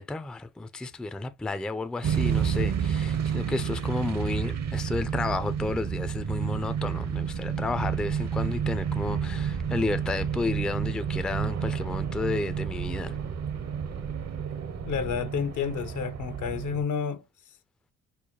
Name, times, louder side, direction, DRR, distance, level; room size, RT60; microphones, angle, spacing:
voice 1, 0.0-13.2, left 3 dB, 5° left, 0.3 m, -32 dB
sound 1, 2.0-16.8, right 7 dB, 55° right, 0.7 m, -30 dB
voice 2, 14.9-17.2, left 7 dB, 65° left, 0.7 m, -30 dB
4.5 x 2.1 x 2.8 m
supercardioid pair, 60°, 32 cm